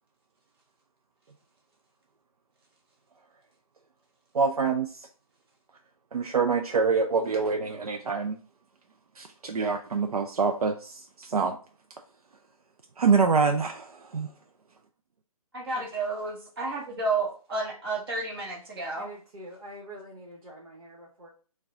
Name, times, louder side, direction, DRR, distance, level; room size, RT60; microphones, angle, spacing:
voice 1, 4.3-5.1 6.1-8.4 9.2-11.6 13.0-14.3, right 5 dB, 85° right, 5 dB, 0.5 m, -26 dB
voice 2, 15.5-19.1, right 3 dB, 40° right, -1 dB, 1.2 m, -31 dB
voice 3, 18.9-21.3, right 1 dB, 70° right, -2 dB, 1.1 m, -45 dB
4.6 x 2.3 x 3.6 m, 0.40 s
hypercardioid pair, 155°, 19 cm